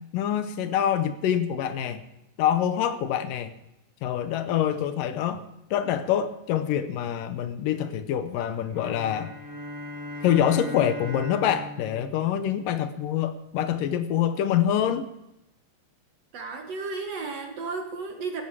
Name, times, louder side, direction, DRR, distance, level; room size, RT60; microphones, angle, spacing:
voice 1, 0.1-2.0 2.4-3.5 4.0-5.4 5.7-9.3 10.2-15.1, left 10 dB, 75° left, 10 dB, 2.4 m, -25 dB
sound 1, 8.7-13.1, left 1 dB, 35° right, 4.5 m, -39 dB
voice 2, 16.3-18.5, right 4 dB, 55° right, 4 dB, 2.1 m, -33 dB
16.0 x 13.5 x 4.7 m, 0.89 s
omnidirectional pair, 4.0 m